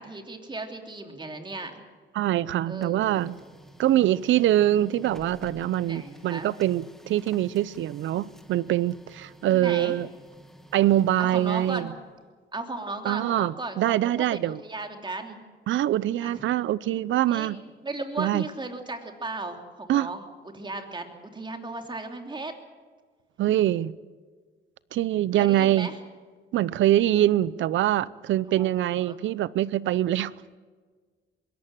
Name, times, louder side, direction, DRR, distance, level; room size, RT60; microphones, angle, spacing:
voice 1, 0.0-1.8 2.7-3.3 5.8-6.5 9.5-10.0 11.2-12.0 12.5-15.4 16.2-16.4 17.3-22.5 25.3-26.0 28.5-28.7 29.0-29.2, right 2 dB, 25° right, 4 dB, 2.9 m, -36 dB
voice 2, 2.1-3.4 3.8-10.1 10.7-11.9 13.0-14.6 15.7-17.6 18.2-18.4 19.9-20.1 23.4-23.9 24.9-25.9 26.5-30.3, right 13 dB, 75° right, 20 dB, 0.6 m, -24 dB
Printer, 2.5-12.3, equal, ahead, 1.7 m, -50 dB
21.5 x 17.5 x 7.7 m, 1.5 s
cardioid pair, 90°, 20 cm